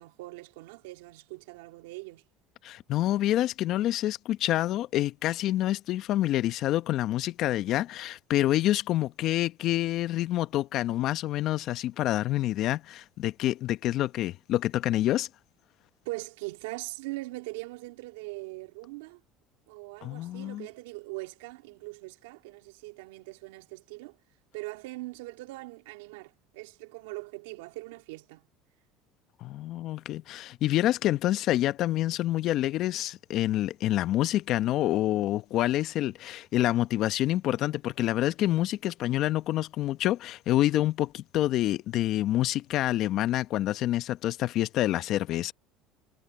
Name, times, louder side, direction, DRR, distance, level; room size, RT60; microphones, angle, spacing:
voice 1, 0.0-2.2 16.0-19.2 19.7-24.2 24.5-28.5, right 22 dB, 80° right, 2.6 m, -41 dB
voice 2, 2.6-15.3 20.0-20.7 29.4-45.5, left 14 dB, 60° left, 1.0 m, -27 dB
supercardioid pair, 85°, 0 cm